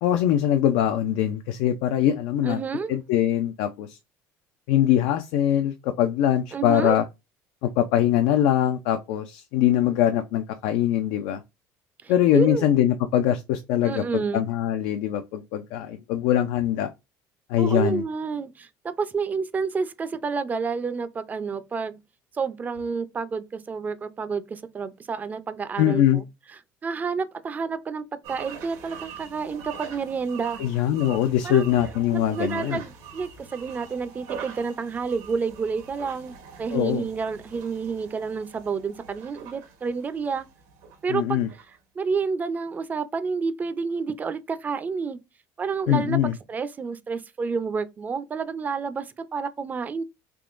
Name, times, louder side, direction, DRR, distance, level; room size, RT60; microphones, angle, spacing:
voice 1, 0.0-2.6 2.9-4.0 4.7-7.0 7.6-11.4 12.1-16.9 17.5-18.0 25.8-26.2 30.6-32.8 36.7-37.0 41.1-41.5 45.9-46.3, left 11 dB, 85° left, 0.4 m, -22 dB
voice 2, 2.4-3.0 6.5-7.0 12.0-12.7 13.8-14.5 17.6-22.0 22.3-26.2 26.8-30.6 31.4-31.7 32.1-40.5 41.0-41.4 42.0-45.2 45.6-50.0, right 5 dB, 25° right, 0.4 m, -29 dB
sound 1, 28.2-41.8, right 7 dB, 85° right, 1.2 m, -43 dB
3.5 x 2.9 x 2.5 m
cardioid pair, 125°, 7 cm